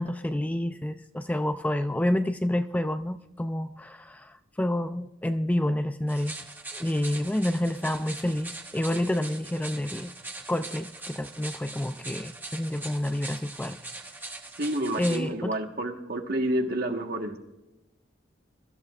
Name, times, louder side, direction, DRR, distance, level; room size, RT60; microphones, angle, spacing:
voice 1, 0.0-6.4 6.7-10.1 10.5-13.8 15.0-15.5, left 1 dB, 10° left, 9 dB, 0.3 m, -29 dB
sound 1, 6.1-15.2, right 2 dB, 10° right, 0.9 m, -41 dB
voice 2, 14.6-17.4, right 1 dB, 55° right, 4 dB, 1.4 m, -29 dB
23.5 x 13.0 x 2.4 m, 0.95 s
head